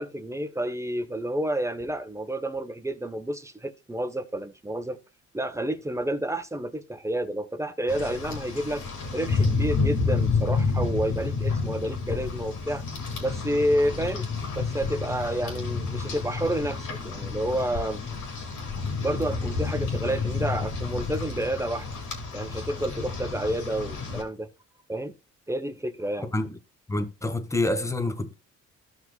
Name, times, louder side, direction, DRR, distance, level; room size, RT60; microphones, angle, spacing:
voice 1, 0.0-5.0 5.3-8.8 9.1-12.8 13.2-14.3 14.5-18.0 19.0-21.9 22.3-24.5 24.9-25.1 25.5-26.3, right 1 dB, 10° right, 1.0 m, -29 dB
Rain, 7.9-24.2, left 4 dB, 75° left, 2.9 m, -30 dB
voice 2, 26.9-28.3, left 2 dB, 10° left, 1.3 m, -27 dB
14.5 x 5.9 x 2.3 m
cardioid pair, 90°, 30 cm